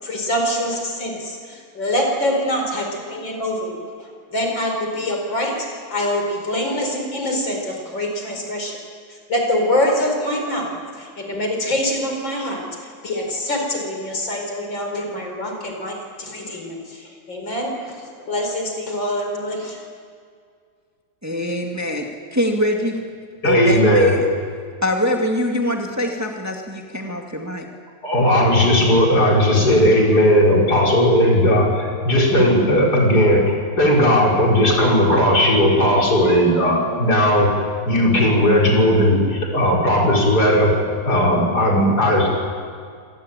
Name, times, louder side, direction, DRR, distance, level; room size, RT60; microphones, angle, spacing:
voice 1, 0.0-8.8 9.1-12.7 13.0-19.8, left 1 dB, 85° left, 2 dB, 5.4 m, -25 dB
voice 2, 21.2-23.0 23.4-24.3 24.8-27.7, left 1 dB, 10° right, 2 dB, 2.1 m, -23 dB
voice 3, 23.4-24.1 28.0-37.5 37.9-40.7 41.1-42.3, equal, 55° left, -2 dB, 5.6 m, -16 dB
26.0 x 19.0 x 9.0 m, 2.1 s
omnidirectional pair, 2.0 m